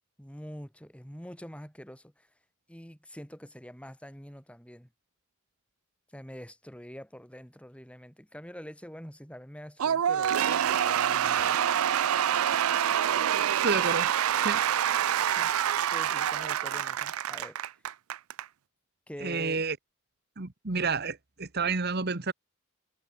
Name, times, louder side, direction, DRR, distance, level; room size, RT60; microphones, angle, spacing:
voice 1, 0.2-2.3 2.7-4.9 6.1-11.6 14.6-14.9 15.3-15.5 15.9-17.6 19.1-19.6, equal, 5° left, 5.0 m, -45 dB
Cheering / Applause / Crowd, 9.8-18.4, right 9 dB, 80° right, 0.4 m, -26 dB
voice 2, 13.6-14.1 14.4-14.6 19.2-19.8 20.4-22.3, right 4 dB, 50° right, 1.4 m, -30 dB
head